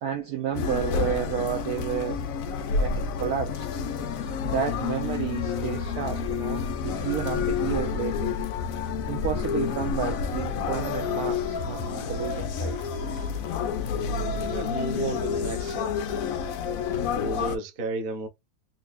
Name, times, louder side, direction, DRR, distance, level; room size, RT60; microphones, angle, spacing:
voice 1, 0.0-2.2 2.8-3.7 4.4-8.4 9.1-12.8, right 9 dB, 70° right, 0.9 m, -31 dB
sound 1, 0.5-17.6, left 6 dB, 70° left, 0.8 m, -29 dB
voice 2, 14.3-16.1 17.1-18.3, right 1 dB, 40° right, 0.8 m, -32 dB
3.9 x 2.7 x 2.4 m
omnidirectional pair, 2.0 m